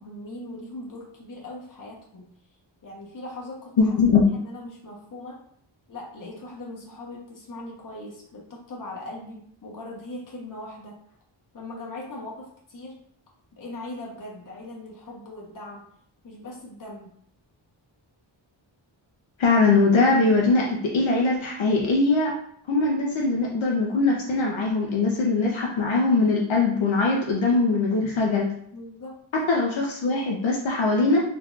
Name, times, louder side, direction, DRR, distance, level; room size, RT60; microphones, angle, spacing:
voice 1, 0.0-2.3 2.8-3.9 4.3-5.4 5.9-11.0 11.5-12.9 13.6-15.8 16.2-17.1 28.7-29.1, left 1 dB, 45° left, -3 dB, 1.0 m, -39 dB
voice 2, 3.8-4.4 19.4-22.3 22.7-28.5 29.3-31.2, left 3 dB, 75° left, -2 dB, 0.7 m, -21 dB
3.6 x 2.9 x 2.4 m, 0.66 s
wide cardioid pair, 110°, 47 cm